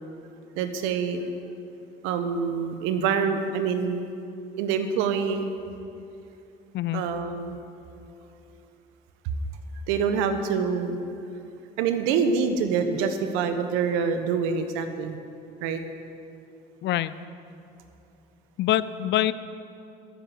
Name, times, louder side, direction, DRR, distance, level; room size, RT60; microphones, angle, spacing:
voice 1, 0.6-1.3 2.0-4.0 4.6-5.5 6.9-7.6 9.9-11.0 11.8-15.2 15.6-15.8, right 6 dB, 85° right, 8 dB, 1.2 m, -26 dB
voice 2, 16.8-17.1 18.6-19.3, left 13 dB, 65° left, 15 dB, 0.6 m, -24 dB
12.5 x 8.3 x 9.3 m, 2.6 s
supercardioid pair, 75°, 20 cm